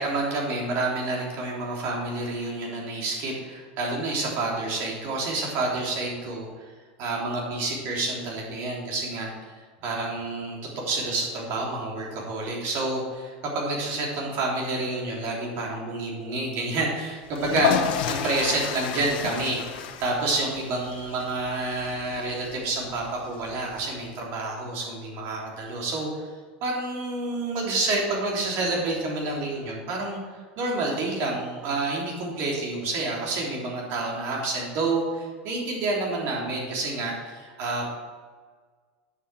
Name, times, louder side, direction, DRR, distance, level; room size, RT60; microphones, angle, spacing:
voice 1, 0.0-6.5 7.0-9.3 9.8-17.7 18.1-26.1 26.6-30.2 30.6-37.9, right 2 dB, 55° right, -2 dB, 3.6 m, -29 dB
sound 1, 17.3-24.1, left 9 dB, 75° left, 1.0 m, -31 dB
9.4 x 6.9 x 6.2 m, 1.5 s
supercardioid pair, 115°, 5 cm